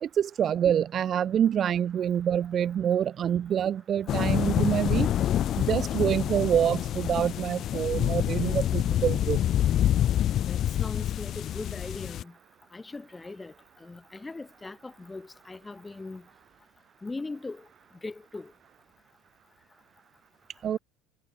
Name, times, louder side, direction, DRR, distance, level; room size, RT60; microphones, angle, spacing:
voice 1, 0.0-5.1 5.6-9.4 20.6-20.8, right 9 dB, 40° right, 0.4 m, -26 dB
sound 1, 4.1-12.2, left 11 dB, 45° left, 0.5 m, -27 dB
voice 2, 10.5-12.4 12.7-16.3 17.0-17.7 18.0-18.5, left 3 dB, 15° left, 6.0 m, -40 dB
figure-of-eight pair, 70°, 0 cm